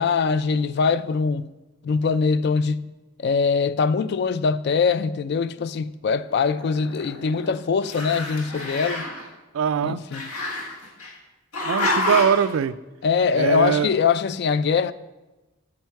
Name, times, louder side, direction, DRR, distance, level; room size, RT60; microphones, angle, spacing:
voice 1, 0.0-1.5 1.8-2.9 3.2-9.0 9.8-10.3 13.0-14.9, left 5 dB, 50° left, 0.3 m, -22 dB
Growling, 6.3-7.5 7.8-9.3 10.1-11.1 11.5-12.5, left 2 dB, 90° left, 1.6 m, -28 dB
voice 2, 9.5-10.0 11.6-12.7 13.4-13.9, right 7 dB, 65° right, 0.3 m, -22 dB
8.8 x 8.4 x 4.7 m
head